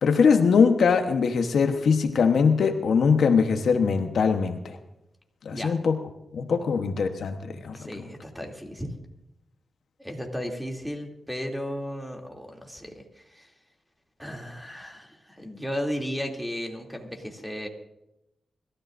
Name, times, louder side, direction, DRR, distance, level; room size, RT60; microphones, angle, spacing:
voice 1, 0.0-4.8 5.4-6.0 6.3-7.8, left 5 dB, 80° left, 6 dB, 1.1 m, -22 dB
voice 2, 7.7-8.9 10.0-13.5 14.2-17.7, equal, ahead, 1 dB, 2.8 m, -35 dB
24.0 x 13.5 x 2.6 m, 0.88 s
cardioid pair, 65°, 0 cm